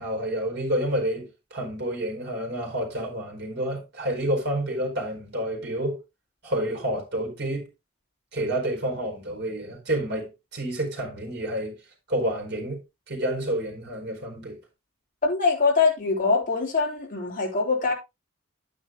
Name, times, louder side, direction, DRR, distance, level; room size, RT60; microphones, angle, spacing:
voice 1, 0.0-6.0 6.4-7.7 8.3-11.8 12.1-12.8 13.1-14.6, right 1 dB, 55° right, 4.6 m, -29 dB
voice 2, 15.2-17.9, left 4 dB, 40° left, 3.7 m, -23 dB
11.5 x 9.5 x 2.4 m
head